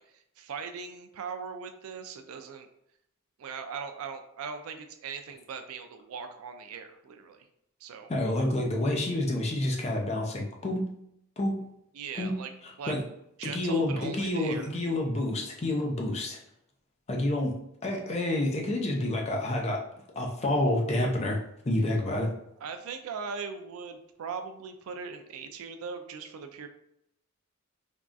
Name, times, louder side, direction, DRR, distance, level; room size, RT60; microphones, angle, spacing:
voice 1, 0.0-2.7 3.4-7.5 7.8-8.1 11.9-12.5 12.8-13.0 13.4-14.7 22.6-26.7, right 6 dB, 80° right, 7 dB, 0.4 m, -39 dB
voice 2, 8.1-10.9 11.4-11.6 12.2-12.4 12.9-13.0 13.4-16.4 17.1-19.8 20.2-21.4 21.7-22.3, left 1 dB, 30° left, 1 dB, 0.4 m, -28 dB
3.5 x 2.3 x 2.5 m, 0.78 s
head